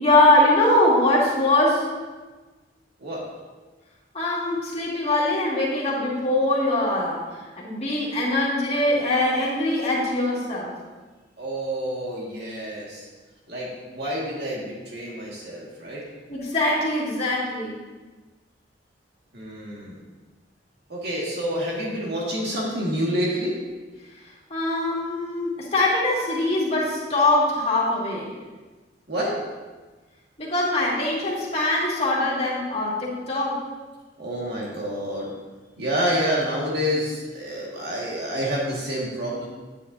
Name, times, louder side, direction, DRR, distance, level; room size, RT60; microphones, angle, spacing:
voice 1, 0.0-1.9 4.1-7.2 7.6-10.7 16.3-17.7 24.5-28.3 30.4-33.5, left 1 dB, 35° left, -5 dB, 2.1 m, -22 dB
voice 2, 11.4-13.1 13.5-16.0 19.3-20.0 20.9-23.5 29.1-29.3 34.2-35.3 35.8-39.5, equal, 65° right, -4 dB, 1.9 m, -28 dB
9.5 x 9.3 x 2.8 m, 1.3 s
head